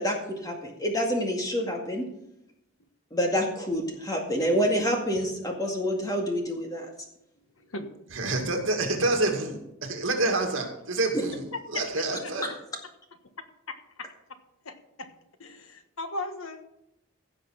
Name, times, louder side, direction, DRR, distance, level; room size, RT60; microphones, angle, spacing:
voice 1, 0.0-2.0 3.1-6.9, equal, 15° left, 1 dB, 2.1 m, -27 dB
voice 2, 7.6-7.9 12.2-12.3 14.0-14.1 14.6-15.1 15.4-16.7, left 2 dB, 75° left, 8 dB, 1.4 m, -37 dB
voice 3, 8.1-12.5, right 2 dB, 65° right, 3 dB, 2.3 m, -28 dB
16.0 x 6.0 x 5.8 m, 0.82 s
head